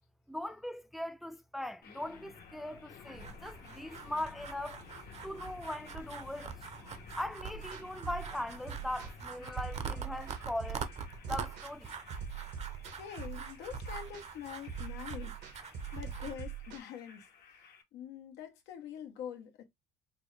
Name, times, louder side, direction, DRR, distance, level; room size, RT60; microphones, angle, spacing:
voice 1, 0.3-4.8 5.2-6.5 6.8-10.8 11.3-11.9, left 1 dB, ahead, 0.4 m, -40 dB
sound 1, 1.8-17.8, left 5 dB, 65° left, 1.1 m, -54 dB
sound 2, 3.1-16.3, right 6 dB, 40° right, 0.7 m, -45 dB
sound 3, 7.5-16.8, right 8 dB, 80° right, 1.4 m, -43 dB
voice 2, 12.9-19.6, left 9 dB, 90° left, 1.1 m, -45 dB
5.1 x 2.1 x 3.3 m
cardioid pair, 110°, 17 cm